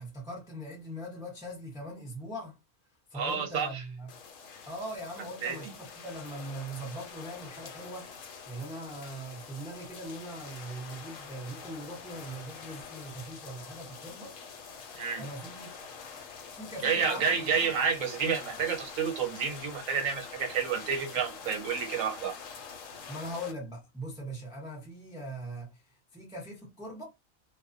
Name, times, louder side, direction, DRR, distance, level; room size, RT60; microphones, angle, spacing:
voice 1, 0.0-2.6 3.1-4.1 4.7-8.1 8.5-14.3 15.2-15.7 16.5-17.3 17.6-17.9 23.1-27.0, right 1 dB, 5° right, 0.6 m, -41 dB
voice 2, 3.1-3.8 5.4-5.6 15.0-15.2 16.8-22.3, right 6 dB, 75° right, 1.1 m, -30 dB
sound 1, 4.1-23.5, left 5 dB, 75° left, 1.0 m, -46 dB
2.3 x 2.2 x 2.5 m
omnidirectional pair, 1.4 m